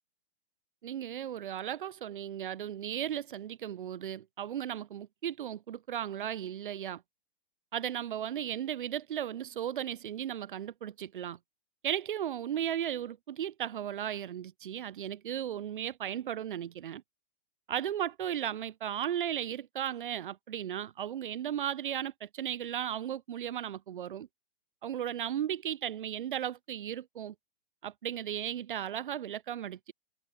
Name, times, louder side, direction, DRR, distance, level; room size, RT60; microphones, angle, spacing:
voice 1, 0.8-7.0 7.7-11.4 11.8-17.0 17.7-24.3 24.8-27.3 27.8-29.9, right 10 dB, 55° right, 0.7 m, -35 dB
figure-of-eight pair, 115°, 31 cm